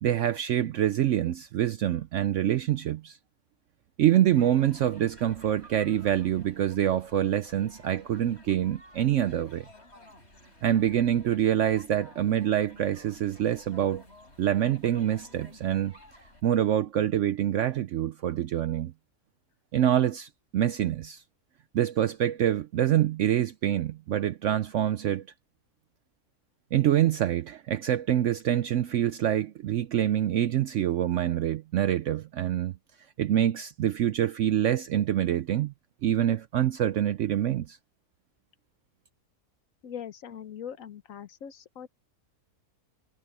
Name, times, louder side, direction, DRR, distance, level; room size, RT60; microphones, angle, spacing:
voice 1, 0.0-3.2 4.0-9.7 10.6-14.0 14.4-15.9 16.4-18.9 19.7-21.2 21.7-25.2 26.7-32.7 33.2-35.7 36.0-37.8, right 11 dB, 65° right, 0.8 m, -26 dB
sound 1, 4.3-16.4, left 1 dB, 40° left, 7.2 m, -54 dB
voice 2, 39.8-41.9, left 8 dB, 60° left, 1.2 m, -41 dB
omnidirectional pair, 1.7 m